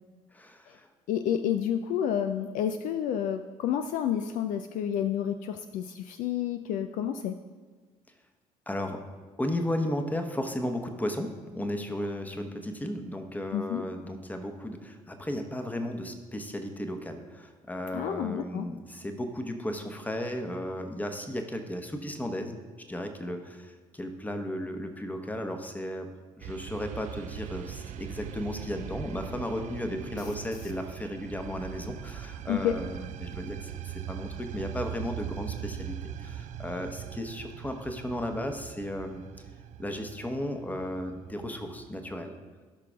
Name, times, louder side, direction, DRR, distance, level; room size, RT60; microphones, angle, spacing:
voice 1, 0.3-0.9 8.7-9.0 9.4-22.6 22.9-26.1 26.4-39.2 39.8-42.3, left 1 dB, 10° left, 5 dB, 1.0 m, -35 dB
voice 2, 1.1-7.3 13.5-13.8 17.9-18.7 30.2-30.3 32.5-32.8, left 9 dB, 50° left, 8 dB, 0.4 m, -30 dB
sound 1, 26.4-42.1, right 10 dB, 45° right, 0.4 m, -41 dB
16.0 x 5.9 x 2.3 m, 1.4 s
figure-of-eight pair, 50°, 18 cm